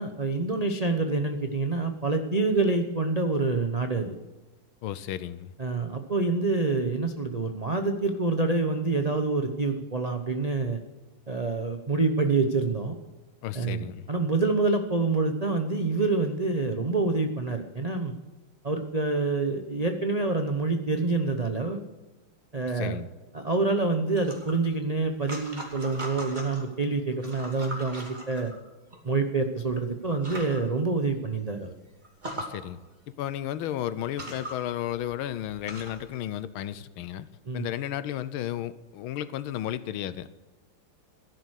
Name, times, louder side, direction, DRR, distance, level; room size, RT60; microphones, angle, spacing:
voice 1, 0.0-4.2 5.6-10.8 11.3-12.9 13.5-18.1 18.6-21.8 22.5-23.1 23.3-28.5 29.0-31.7 37.5-37.7, right 3 dB, 65° right, 5 dB, 0.3 m, -27 dB
voice 2, 4.8-5.5 13.4-14.1 22.7-23.1 32.4-32.8 33.2-37.3 37.5-40.3, left 11 dB, 80° left, 15 dB, 1.5 m, -33 dB
sound 1, 24.1-26.7 27.1-29.0 29.7-29.8 30.1-30.6 31.1-31.2 31.5-31.6 32.0-32.5 33.5-33.6 34.0-36.1, right 1 dB, 20° right, 2.7 m, -40 dB
14.0 x 11.0 x 6.4 m, 1.2 s
omnidirectional pair, 2.3 m